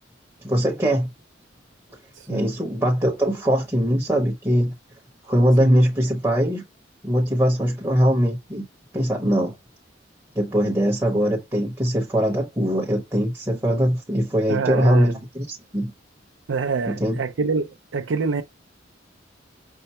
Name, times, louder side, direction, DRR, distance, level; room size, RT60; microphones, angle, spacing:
voice 1, 0.4-1.1 2.3-4.7 5.2-6.6 7.0-8.6 8.9-9.5 10.3-15.9 16.9-17.2, equal, 15° right, 0.9 m, -21 dB
voice 2, 2.1-2.5 5.6-5.8 14.5-15.2 16.5-18.4, right 4 dB, 75° right, 0.5 m, -26 dB
5.5 x 2.1 x 4.2 m
head